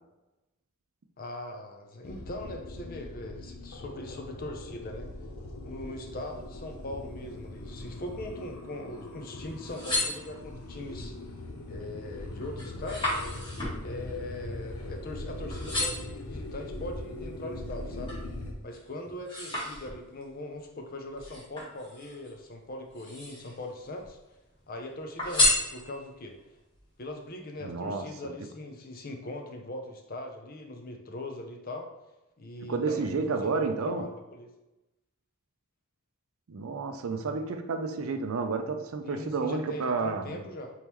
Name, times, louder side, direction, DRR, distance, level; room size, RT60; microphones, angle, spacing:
voice 1, 1.2-5.1 5.6-11.1 11.7-13.2 13.8-18.1 18.6-24.2 24.7-26.4 27.0-31.9 32.4-34.5 39.0-40.7, left 1 dB, 40° left, 3 dB, 0.6 m, -40 dB
sound 1, 2.0-18.5, left 1 dB, 85° left, 0.7 m, -41 dB
sound 2, 9.6-10.8 11.3-11.7 12.1-15.2 15.5-16.2 16.8-18.3 18.7-20.3 21.2-22.3 22.8-23.6 24.0-24.7 25.2-26.2 26.8-26.9, left 2 dB, 25° left, 1.5 m, -32 dB
voice 2, 27.6-28.1 32.6-34.1 36.5-40.4, right 4 dB, 70° right, 7 dB, 0.4 m, -31 dB
4.2 x 3.6 x 3.0 m, 1.0 s
head